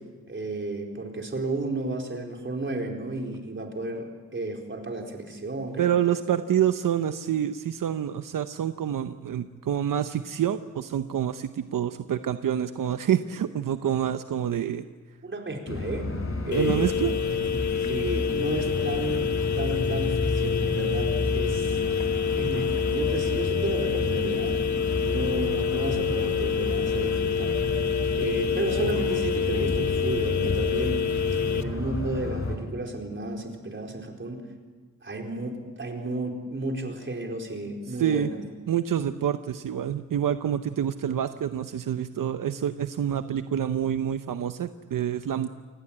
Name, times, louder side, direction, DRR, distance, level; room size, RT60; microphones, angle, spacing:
voice 1, 0.3-5.9 15.2-16.1 16.4-16.9 17.3-19.3 19.6-21.8 22.4-24.6 25.0-27.5 28.1-31.2 31.5-34.4 35.0-38.4, right 2 dB, 35° right, 2 dB, 4.3 m, -32 dB
voice 2, 5.8-14.9 16.5-17.1 38.0-38.3 38.7-45.5, right 9 dB, 75° right, 9 dB, 0.8 m, -27 dB
sound 1, 15.7-32.6, left 3 dB, 45° left, 4.7 m, -31 dB
sound 2, 16.5-31.6, left 7 dB, 60° left, 1.2 m, -27 dB
sound 3, 28.2-29.7, right 4 dB, 55° right, 3.4 m, -47 dB
28.0 x 19.5 x 8.8 m, 1.4 s
wide cardioid pair, 115°, 33 cm